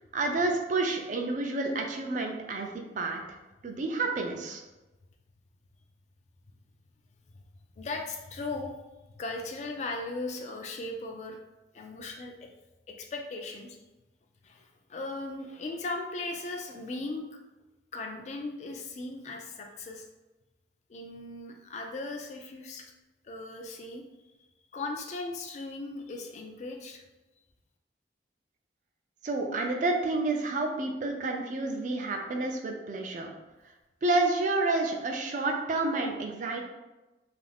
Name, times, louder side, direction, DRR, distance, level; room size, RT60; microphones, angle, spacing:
voice 1, 0.1-3.2 3.6-4.6 29.2-33.3 34.0-36.7, right 2 dB, 45° right, 2 dB, 0.4 m, -29 dB
voice 2, 7.8-8.8 9.1-11.4 11.7-12.5 12.9-13.8 14.4-17.3 17.9-20.1 20.9-22.9 23.2-24.0 24.7-27.0, left 2 dB, 40° left, 3 dB, 0.3 m, -38 dB
2.4 x 2.3 x 3.3 m, 1.1 s
head